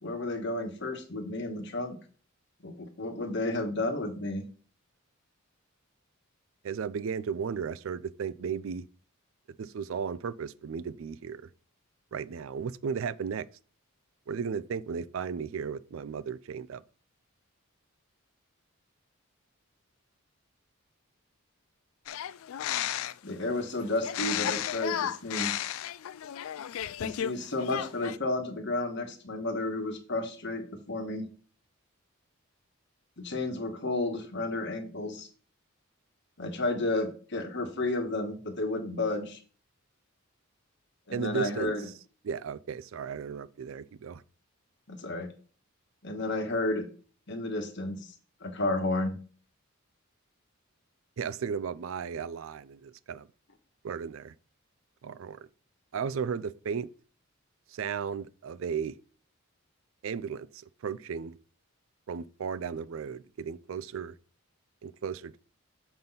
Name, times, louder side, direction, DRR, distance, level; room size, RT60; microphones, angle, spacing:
voice 1, 0.0-2.0 2.6-4.5 23.2-25.6 27.0-31.3 33.2-35.3 36.4-39.4 41.1-41.9 44.9-45.3 46.0-46.9 47.3-48.1 48.4-49.2, left 2 dB, 55° left, 1.3 m, -32 dB
voice 2, 6.6-8.9 9.6-11.5 12.1-13.5 14.3-16.8 41.1-41.7 42.2-44.2 51.2-53.3 53.8-54.3 55.0-55.4 55.9-56.9 57.7-59.0 60.0-61.4 62.1-64.1 64.8-65.4, right 6 dB, 65° right, 0.4 m, -35 dB
sound 1, 22.1-23.3 24.0-27.3 27.6-28.2, left 11 dB, 70° left, 0.3 m, -33 dB
6.9 x 3.9 x 5.5 m
head